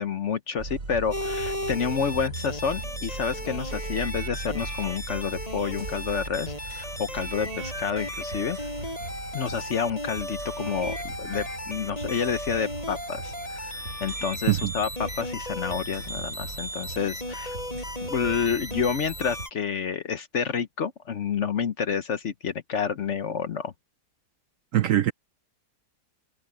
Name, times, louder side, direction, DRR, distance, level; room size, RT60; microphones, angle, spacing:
voice 1, 0.0-8.6 9.3-17.6 18.1-23.7, left 6 dB, 55° left, 1.0 m, -29 dB
sound 1, 0.6-19.5, right 2 dB, 50° right, 3.5 m, -39 dB
sound 2, 1.1-19.5, equal, 20° left, 7.3 m, -36 dB
sound 3, 3.7-6.6 7.1-16.1 16.8-16.9, right 1 dB, 10° right, 4.3 m, -44 dB
voice 2, 24.7-25.1, right 12 dB, 65° right, 0.8 m, -22 dB
omnidirectional pair, 1.8 m